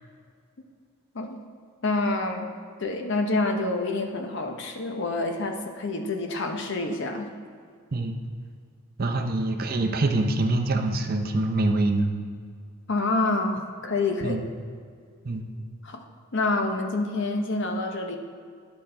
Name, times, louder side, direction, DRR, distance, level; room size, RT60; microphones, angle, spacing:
voice 1, 1.8-2.5 2.8-7.3 12.9-14.4 15.8-16.0 16.3-18.2, left 2 dB, 55° left, 4 dB, 0.7 m, -27 dB
voice 2, 9.0-12.1 14.2-14.4 15.2-15.5, right 2 dB, 40° right, 4 dB, 0.6 m, -25 dB
10.5 x 5.3 x 4.4 m, 2.1 s
head